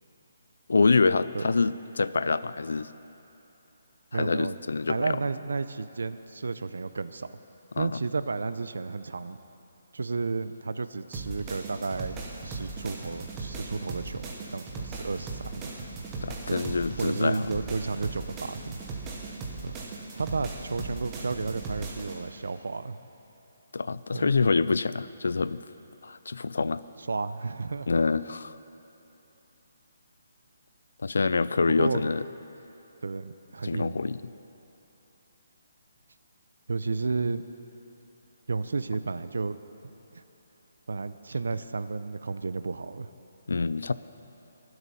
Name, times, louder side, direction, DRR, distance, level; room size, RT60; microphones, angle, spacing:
voice 1, 0.7-2.9 4.1-5.2 7.8-8.0 16.2-17.5 23.7-25.6 26.0-26.8 27.9-28.5 31.0-32.2 33.6-34.2 43.5-43.9, left 4 dB, 75° left, 16 dB, 0.4 m, -26 dB
voice 2, 4.1-4.5 4.9-7.3 7.8-9.4 9.9-12.2 12.4-15.7 16.5-16.6 17.0-18.8 19.6-19.8 20.1-23.0 24.1-24.3 27.1-27.9 31.7-32.1 33.0-34.0 36.7-37.4 38.5-39.6 40.1-40.2 40.9-43.1, right 4 dB, 90° right, 12 dB, 0.6 m, -32 dB
sound 1, 11.1-22.2, right 3 dB, 10° right, 1.0 m, -38 dB
21.5 x 8.0 x 5.6 m, 3.0 s
hypercardioid pair, 180°, 0 cm